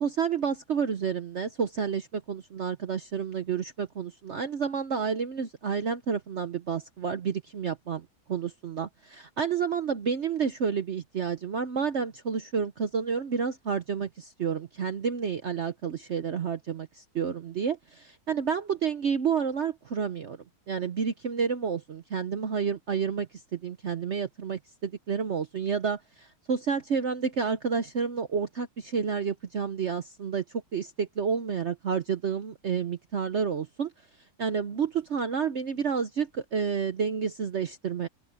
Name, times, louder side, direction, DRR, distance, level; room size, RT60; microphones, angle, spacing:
voice 1, 0.0-20.4 20.7-30.4 30.7-33.9 34.4-38.1, right 6 dB, 50° right, 0.9 m, -30 dB
open air
omnidirectional pair, 1.9 m